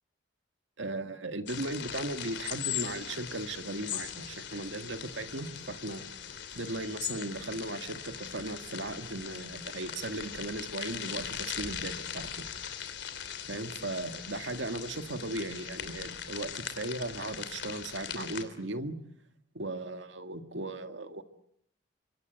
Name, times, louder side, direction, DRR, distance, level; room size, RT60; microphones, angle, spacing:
voice 1, 0.8-6.1 6.6-12.5 13.5-19.0 19.5-21.2, right 2 dB, 75° right, 8 dB, 1.9 m, -37 dB
sound 1, 1.5-18.4, left 9 dB, 65° left, 3.1 m, -40 dB
27.0 x 24.0 x 8.1 m, 0.71 s
head